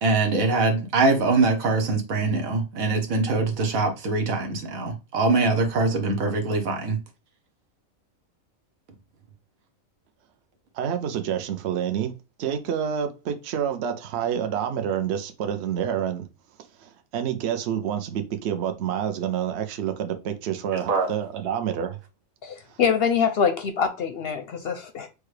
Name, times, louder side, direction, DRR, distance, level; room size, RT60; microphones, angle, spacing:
voice 1, 0.0-7.0 20.9-21.1, right 3 dB, 90° right, 1.4 m, -23 dB
voice 2, 10.7-12.1 12.4-16.3 16.8-22.0, right 9 dB, 60° right, 0.8 m, -28 dB
voice 3, 22.4-25.1, left 6 dB, 60° left, 0.7 m, -24 dB
6.4 x 2.3 x 3.2 m
omnidirectional pair, 1.4 m